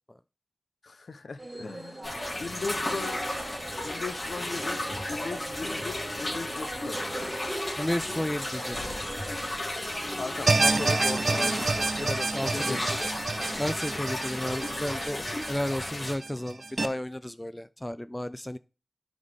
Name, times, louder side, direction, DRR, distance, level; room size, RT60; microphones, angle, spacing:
voice 1, 0.8-3.4 3.8-4.8 5.1-7.0 10.2-13.1, left 3 dB, 75° left, 0.6 m, -37 dB
sound 1, 1.4-13.7, right 1 dB, 30° right, 1.2 m, -41 dB
sound 2, 2.0-16.1, left 1 dB, 50° left, 2.7 m, -34 dB
voice 2, 7.8-8.8 12.3-13.1 13.6-18.6, left 1 dB, 15° left, 0.3 m, -33 dB
sound 3, 10.5-16.9, right 3 dB, 55° right, 0.6 m, -28 dB
11.0 x 4.0 x 3.3 m
wide cardioid pair, 60°, 0 cm